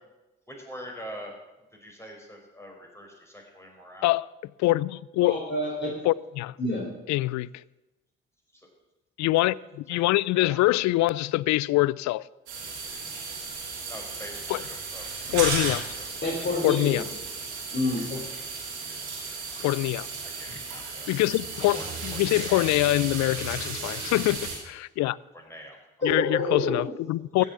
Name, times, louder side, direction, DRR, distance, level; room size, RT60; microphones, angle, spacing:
voice 1, 0.5-1.3 1.8-4.1 8.5-8.6 9.9-10.7 13.9-15.5 16.0-16.1 16.4-16.5 18.1-18.2 20.4-21.1 21.7-21.9 22.1-22.6 25.3-25.8 27.4-27.5, equal, 10° left, 5.2 m, -44 dB
voice 2, 4.6-5.4 6.0-6.6 7.1-7.5 9.2-12.2 14.5-14.6 15.3-15.8 16.6-17.0 19.6-20.1 21.1-21.8 22.0-25.2 26.0-27.4, left 18 dB, 60° left, 0.5 m, -24 dB
voice 3, 5.2-5.9 6.6-6.9 16.2-17.0 17.7-18.2 26.0-26.8, left 2 dB, 35° left, 3.8 m, -27 dB
sound 1, 12.5-24.5, right 4 dB, 90° right, 2.8 m, -35 dB
15.5 x 6.7 x 8.4 m
hypercardioid pair, 40°, 33 cm